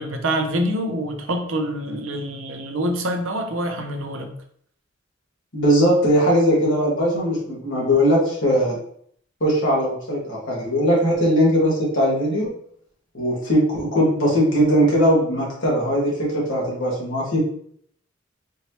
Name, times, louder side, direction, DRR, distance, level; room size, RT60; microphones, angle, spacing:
voice 1, 0.0-4.3, right 1 dB, 80° right, 5 dB, 0.7 m, -26 dB
voice 2, 5.5-8.8 9.4-12.5 13.1-17.4, equal, 65° left, -5 dB, 1.8 m, -19 dB
4.5 x 3.0 x 2.9 m, 0.64 s
head